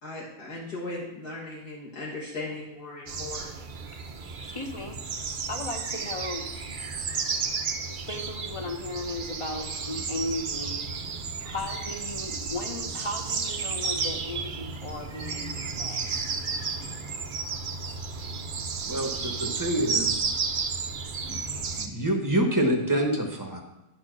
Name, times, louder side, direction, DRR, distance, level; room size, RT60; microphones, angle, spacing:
voice 1, 0.0-3.5, left 2 dB, 70° left, -7 dB, 2.3 m, -37 dB
sound 1, 3.1-21.9, right 5 dB, 65° right, 0.5 m, -32 dB
voice 2, 4.5-5.0 5.5-6.5 7.8-16.2, left 2 dB, 30° left, 4 dB, 0.6 m, -36 dB
voice 3, 18.8-20.2 21.3-21.4 21.8-23.6, right 1 dB, 15° right, 3 dB, 0.9 m, -26 dB
11.0 x 4.4 x 6.1 m, 0.98 s
omnidirectional pair, 1.8 m